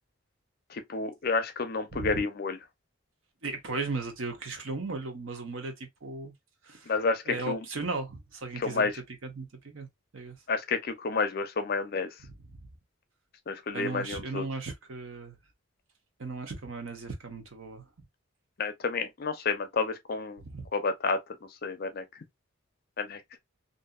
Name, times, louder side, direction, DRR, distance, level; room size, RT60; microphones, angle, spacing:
voice 1, 0.7-2.6 6.9-7.6 8.6-8.9 10.5-12.1 13.5-14.5 18.6-20.4 20.7-21.2 21.6-22.0 23.0-23.2, left 4 dB, 50° left, 0.5 m, -30 dB
voice 2, 3.4-6.3 6.6-6.9 7.3-8.9 9.2-9.9 10.1-10.4 12.5-12.6 13.7-15.4 16.2-17.8 20.4-20.7, right 3 dB, 80° right, 0.9 m, -36 dB
2.7 x 2.6 x 2.3 m
head